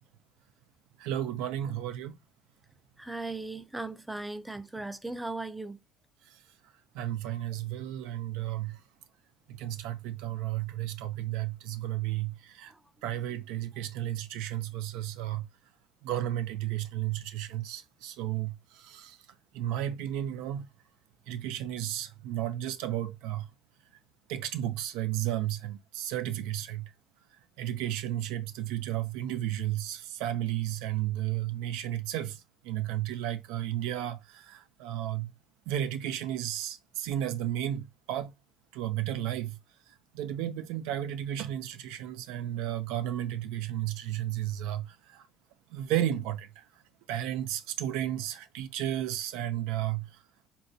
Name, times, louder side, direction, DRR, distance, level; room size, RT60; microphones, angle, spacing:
voice 1, 1.0-2.2 6.9-8.8 9.5-12.7 13.0-15.5 16.0-19.2 19.5-20.7 21.3-23.5 24.3-26.9 27.6-32.4 32.6-35.3 35.7-38.3 38.7-39.6 40.1-45.2 45.7-46.6 47.1-50.1, right 12 dB, 85° right, 0.4 m, -33 dB
voice 2, 3.0-5.8 12.7-12.8, right 2 dB, 5° right, 0.3 m, -37 dB
4.0 x 2.2 x 2.7 m
cardioid pair, 145°, 0 cm